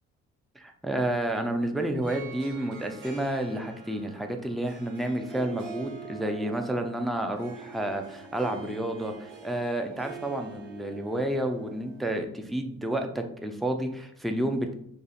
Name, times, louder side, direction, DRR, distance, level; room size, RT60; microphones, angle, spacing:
voice 1, 0.6-14.7, right 1 dB, ahead, 5 dB, 0.4 m, -30 dB
Harp, 1.9-12.2, right 5 dB, 75° right, 0.9 m, -45 dB
2.8 x 2.5 x 4.1 m, 0.69 s
cardioid pair, 90°, 30 cm